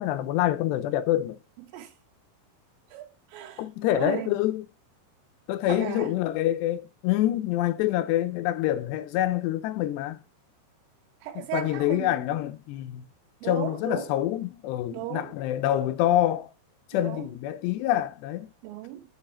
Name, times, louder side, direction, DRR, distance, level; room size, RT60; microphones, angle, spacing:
voice 1, 0.0-1.4 3.6-4.7 5.5-10.2 11.4-13.1 13.4-16.5 16.9-18.5, left 13 dB, 80° left, 2.6 m, -26 dB
voice 2, 2.9-3.6 3.9-4.3 5.7-6.1 11.2-12.3 13.4-14.1 14.9-15.4 16.9-17.3 18.6-19.0, right 12 dB, 85° right, 3.9 m, -35 dB
7.7 x 7.2 x 5.9 m
omnidirectional pair, 5.7 m